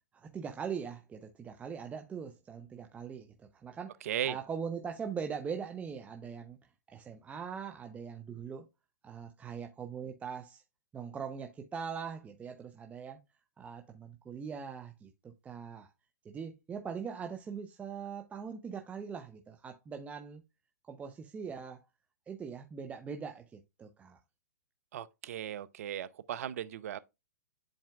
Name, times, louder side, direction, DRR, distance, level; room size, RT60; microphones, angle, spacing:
voice 1, 0.1-4.0 4.2-6.6 6.9-8.7 9.0-10.6 10.9-13.2 13.6-15.9 16.2-20.4 20.8-21.8 22.3-24.2, right 6 dB, 15° right, 0.8 m, -41 dB
voice 2, 4.0-4.4 24.9-27.0, right 10 dB, 60° right, 0.7 m, -37 dB
10.5 x 4.3 x 2.3 m
hypercardioid pair, 120°, 9 cm